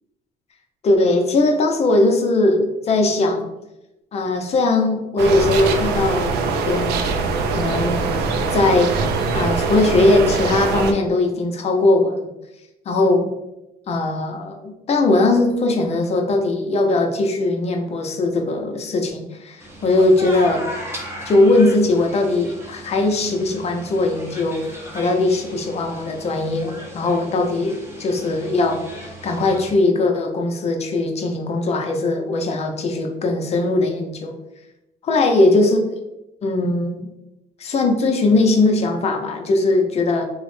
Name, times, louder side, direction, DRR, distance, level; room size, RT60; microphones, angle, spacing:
voice 1, 0.8-3.5 4.1-6.3 6.7-7.0 7.5-8.1 8.5-8.9 9.3-12.3 12.9-13.3 13.9-20.7 21.3-24.7 24.9-34.3 35.0-35.8 36.4-37.1 37.6-40.2, left 2 dB, 40° left, 3 dB, 0.5 m, -19 dB
sound 1, 5.2-10.9, right 4 dB, 75° right, 0.4 m, -22 dB
sound 2, 19.6-29.7, equal, 15° right, 0.7 m, -37 dB
3.0 x 2.0 x 3.1 m, 0.93 s
cardioid pair, 110°, 17 cm